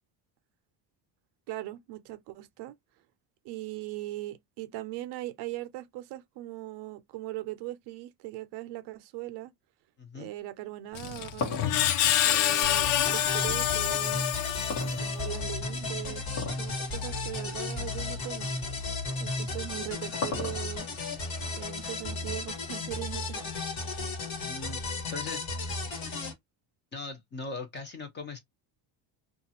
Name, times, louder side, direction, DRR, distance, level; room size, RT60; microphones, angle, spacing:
voice 1, 1.5-2.8 3.4-9.5 10.1-11.6 12.2-14.3 14.6-16.3 16.6-18.5 19.2-20.9 21.5-23.5, right 16 dB, 60° right, 0.5 m, -40 dB
voice 2, 10.0-10.3 24.4-25.5 26.9-28.4, left 3 dB, 25° left, 0.6 m, -40 dB
Screech, 10.9-15.2, left 12 dB, 90° left, 0.6 m, -27 dB
sound 1, 10.9-13.3 14.7-15.6 16.3-16.7 17.1-17.2 17.9-18.0 19.4-20.9, left 4 dB, 70° left, 1.2 m, -35 dB
sound 2, 12.6-26.3, left 3 dB, 45° left, 1.4 m, -34 dB
2.4 x 2.3 x 2.7 m
cardioid pair, 145°, 48 cm